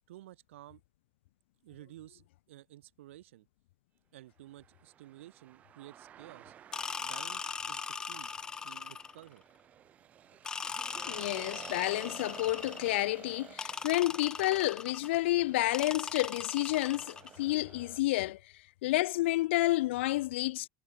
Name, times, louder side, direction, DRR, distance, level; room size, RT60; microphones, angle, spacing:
voice 1, 0.1-0.8 1.6-3.5 4.1-6.5 7.0-8.3 8.6-9.4, right 15 dB, 85° right, 5.6 m, -53 dB
sound 1, 4.5-18.0, right 10 dB, 20° right, 5.3 m, -53 dB
sound 2, 6.7-9.3 10.4-13.1 13.6-15.2 15.7-17.4, left 5 dB, 10° left, 0.9 m, -40 dB
voice 2, 11.0-18.4 18.8-20.7, left 17 dB, 65° left, 0.6 m, -30 dB
supercardioid pair, 175°, 7 cm